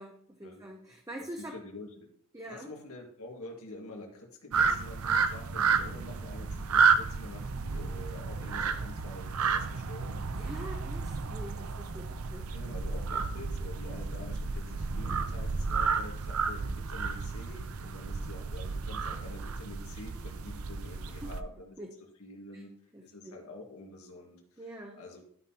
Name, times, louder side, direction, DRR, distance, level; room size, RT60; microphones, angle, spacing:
voice 1, 0.0-1.6 2.3-2.7 10.3-12.5 13.1-13.2 21.2-21.3 21.8-22.0 22.5-22.6 22.9-23.4 24.6-25.0, right 1 dB, 15° right, 2 dB, 0.6 m, -44 dB
voice 2, 1.4-2.1 2.5-10.3 12.5-21.8 22.2-22.7 23.0-24.6 25.0-25.2, left 2 dB, 80° left, 1 dB, 1.8 m, -47 dB
sound 1, 4.5-21.4, right 5 dB, 75° right, 0.6 m, -31 dB
12.0 x 5.7 x 2.8 m, 0.64 s
head